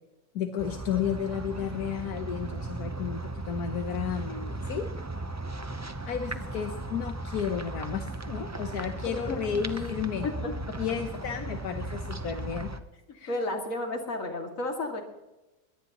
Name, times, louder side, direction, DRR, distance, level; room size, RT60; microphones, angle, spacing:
voice 1, 0.3-4.9 6.0-10.3 10.8-12.7 13.1-13.4, left 8 dB, 85° left, 6 dB, 1.5 m, -32 dB
sound 1, 0.6-12.8, right 2 dB, 25° right, 0.4 m, -36 dB
voice 2, 9.1-9.4 10.2-10.3 13.3-15.0, left 2 dB, 60° left, 2 dB, 2.8 m, -32 dB
21.0 x 18.0 x 3.0 m, 1.0 s
omnidirectional pair, 1.5 m